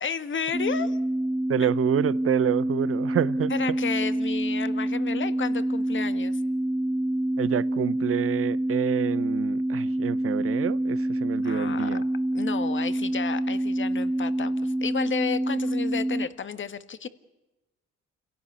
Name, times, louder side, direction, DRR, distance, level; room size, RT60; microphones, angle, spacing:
voice 1, 0.0-1.0 3.5-6.4 11.4-11.9 12.3-17.1, left 6 dB, 40° left, 1.6 m, -32 dB
sound 1, 0.5-16.3, right 1 dB, 10° right, 1.2 m, -27 dB
voice 2, 1.5-3.8 7.4-12.0, right 10 dB, 50° right, 0.8 m, -28 dB
28.0 x 17.5 x 8.6 m
cardioid pair, 90°, 30 cm